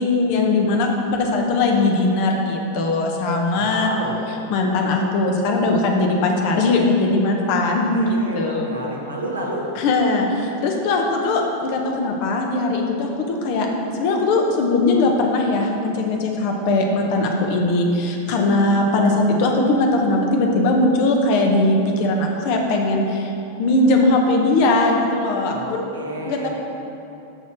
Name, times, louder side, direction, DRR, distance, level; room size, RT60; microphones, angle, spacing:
voice 1, 0.0-3.9 4.5-8.7 9.7-13.7 13.9-23.3 23.6-25.8 26.3-26.5, left 2 dB, 45° left, 1 dB, 1.3 m, -20 dB
voice 2, 3.5-4.2 7.5-7.7 7.9-9.7 25.5-26.5, right 1 dB, 80° right, -3 dB, 1.7 m, -30 dB
12.5 x 4.4 x 6.1 m, 2.8 s
figure-of-eight pair, 90°, 0 cm